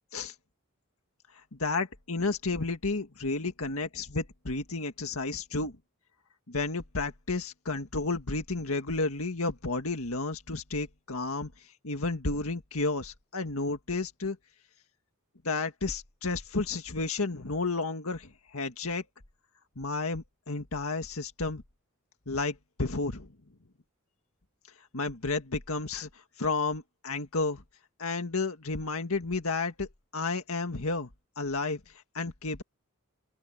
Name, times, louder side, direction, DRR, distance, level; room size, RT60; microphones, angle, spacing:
voice 1, 1.5-5.8 6.5-11.5 11.8-14.4 15.4-19.0 19.8-21.6 22.3-23.3 24.9-27.6 28.0-29.9 30.1-31.1 31.4-31.8 32.1-32.6, left 3 dB, 75° left, 1.9 m, -32 dB
open air
head